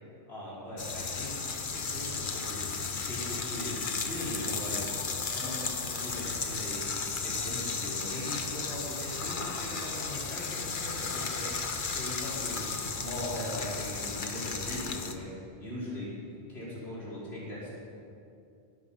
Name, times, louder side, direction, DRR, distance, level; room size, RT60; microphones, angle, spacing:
voice 1, 0.2-1.4 1.7-4.8 5.2-6.9 7.2-15.3 15.6-16.1 16.5-17.7, left 1 dB, 80° left, -7 dB, 4.7 m, -40 dB
sound 1, 0.8-15.2, left 5 dB, 55° left, 1.2 m, -34 dB
21.5 x 11.0 x 5.5 m, 2.5 s
omnidirectional pair, 1.1 m